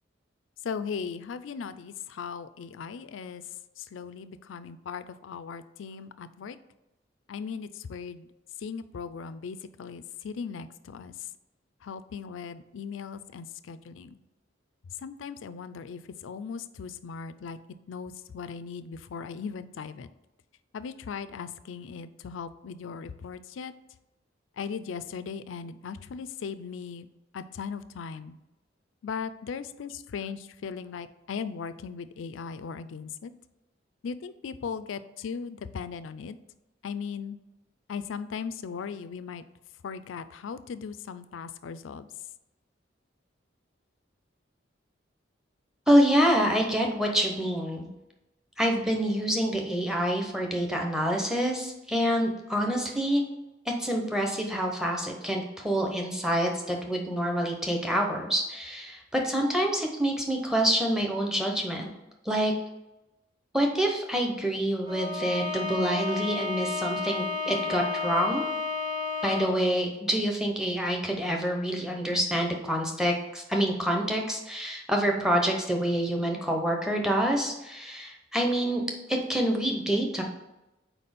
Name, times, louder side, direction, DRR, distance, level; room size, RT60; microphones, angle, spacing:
voice 1, 0.6-3.4 3.8-6.6 7.3-8.3 8.6-11.1 11.8-14.2 15.0-17.6 17.9-20.1 20.7-23.7 24.6-27.1 27.3-28.3 29.0-33.3 34.0-36.4 36.8-37.4 37.9-39.4 39.8-42.1, left 6 dB, 85° left, 13 dB, 0.4 m, -38 dB
voice 2, 45.9-47.9 48.6-53.2 53.8-61.9 62.3-62.5 63.5-68.4 69.2-78.8 79.1-80.2, equal, 5° right, 1 dB, 0.7 m, -27 dB
Bowed string instrument, 64.9-69.7, left 4 dB, 25° right, 1.1 m, -32 dB
4.5 x 4.2 x 5.1 m, 0.96 s
head